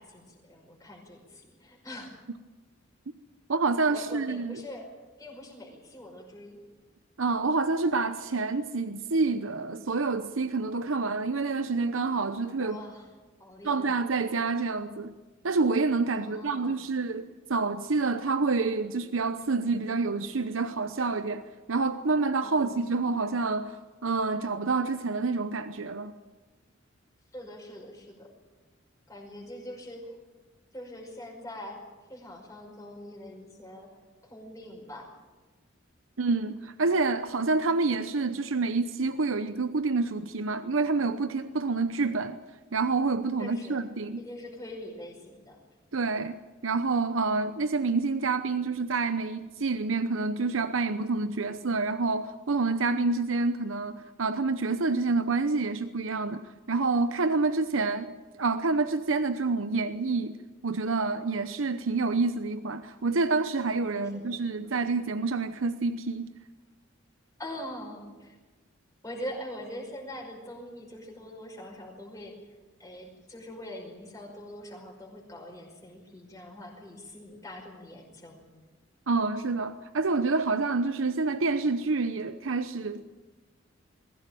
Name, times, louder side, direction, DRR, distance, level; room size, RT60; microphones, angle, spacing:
voice 1, 0.0-2.1 3.9-6.6 12.6-13.1 13.4-13.9 16.1-16.7 22.4-22.8 27.3-28.3 29.1-30.2 30.7-31.8 32.1-34.0 34.2-35.1 43.4-43.9 44.2-45.6 63.9-64.4 67.4-68.4 69.0-72.4 72.8-78.4, left 1 dB, 15° left, 5.4 m, -43 dB
voice 2, 3.5-4.6 7.2-12.8 13.6-15.1 15.4-23.8 24.0-26.1 36.2-42.4 42.7-44.2 45.9-46.4 46.6-56.4 56.7-58.1 58.4-60.3 60.6-66.3 79.1-83.2, right 3 dB, 80° right, 0.9 m, -28 dB
21.5 x 17.0 x 9.2 m
head